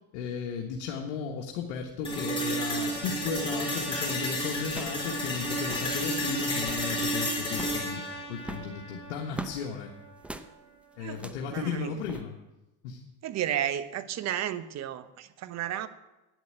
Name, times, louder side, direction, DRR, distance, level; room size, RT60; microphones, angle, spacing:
voice 1, 0.1-9.9 11.0-12.3 12.8-13.0, left 6 dB, 85° left, 1 dB, 1.5 m, -35 dB
sound 1, 2.0-10.1, equal, 15° left, 4.1 m, -32 dB
sound 2, 4.6-5.1 5.3-5.4 5.6-5.9 6.4-6.9 7.5-7.9 8.4-9.6 10.2-10.5 11.1-11.5 12.0-12.2, right 1 dB, 5° right, 0.7 m, -41 dB
voice 2, 11.5-11.9 13.2-15.9, right 11 dB, 45° right, 12 dB, 1.0 m, -32 dB
9.4 x 8.1 x 9.0 m, 1.0 s
supercardioid pair, 105°, 36 cm